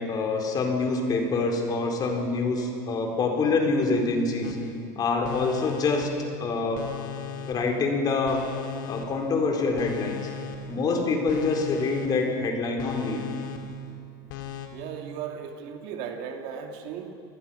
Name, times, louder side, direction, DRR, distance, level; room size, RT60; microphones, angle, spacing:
voice 1, 0.0-4.6 5.0-6.1 6.4-6.9 7.5-8.4 8.8-10.2 10.7-13.2, left 3 dB, 40° left, 2 dB, 4.2 m, -26 dB
sound 1, 4.4-4.9 5.2-6.4 6.7-7.9 8.3-9.4 9.8-10.9 11.3-12.4 12.8-13.9 14.3-14.7, left 6 dB, 85° left, 2.3 m, -37 dB
voice 2, 14.7-17.1, right 7 dB, 65° right, 4 dB, 2.5 m, -36 dB
28.0 x 19.5 x 5.7 m, 2.4 s
supercardioid pair, 110°, 10 cm